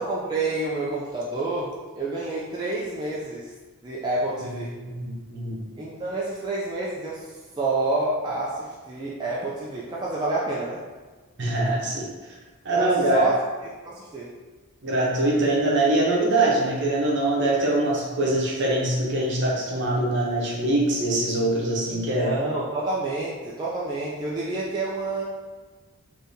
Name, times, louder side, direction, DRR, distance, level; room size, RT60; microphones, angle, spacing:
voice 1, 0.0-3.5 3.8-4.8 5.8-7.3 7.6-10.8 12.7-13.4 13.9-14.3 22.2-25.2, right 2 dB, 20° right, -7 dB, 0.3 m, -28 dB
voice 2, 4.8-5.6 11.4-12.1 12.6-13.3 14.8-22.3, right 2 dB, 50° right, -4 dB, 0.8 m, -23 dB
3.5 x 2.7 x 2.7 m, 1.3 s
head